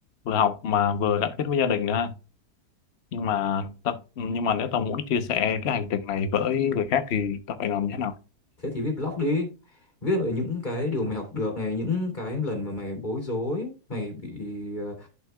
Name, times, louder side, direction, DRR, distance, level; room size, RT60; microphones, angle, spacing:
voice 1, 0.3-2.1 3.1-8.2, left 7 dB, 50° left, 0.9 m, -26 dB
voice 2, 8.6-9.5 10.0-15.1, left 2 dB, 25° left, 2.5 m, -29 dB
11.5 x 5.7 x 2.2 m
omnidirectional pair, 1.8 m